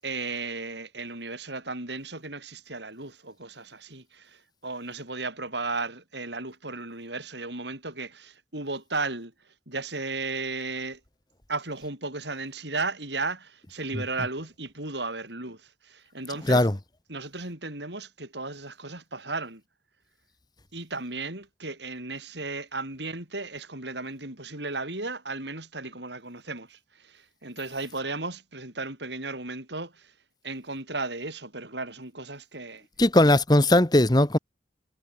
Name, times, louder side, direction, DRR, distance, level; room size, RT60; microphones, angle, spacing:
voice 1, 0.0-9.3 9.7-11.0 11.5-16.7 17.1-19.6 20.7-30.1 30.4-32.9, right 3 dB, 75° right, 7.8 m, -35 dB
voice 2, 33.0-34.4, left 1 dB, 25° left, 1.3 m, -19 dB
head